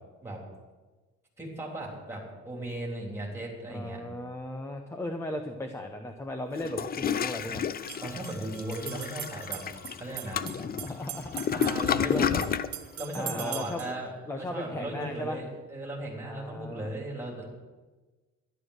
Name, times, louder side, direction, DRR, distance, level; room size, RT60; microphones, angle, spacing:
voice 1, 1.4-4.0 8.0-9.6 10.0-10.4 11.5-12.4 12.9-17.5, right 1 dB, 10° right, -2 dB, 3.4 m, -37 dB
voice 2, 3.7-7.6 10.4-11.6 12.1-12.3 13.1-13.9 14.3-15.4 16.2-16.9, left 1 dB, 10° left, 5 dB, 0.8 m, -37 dB
sound 1, 6.1-6.2 7.7-14.0, right 11 dB, 55° right, 0.8 m, -42 dB
Toilet flush, 6.5-12.7, left 8 dB, 30° left, 0.4 m, -31 dB
12.0 x 11.0 x 6.5 m, 1.3 s
cardioid pair, 165°, 29 cm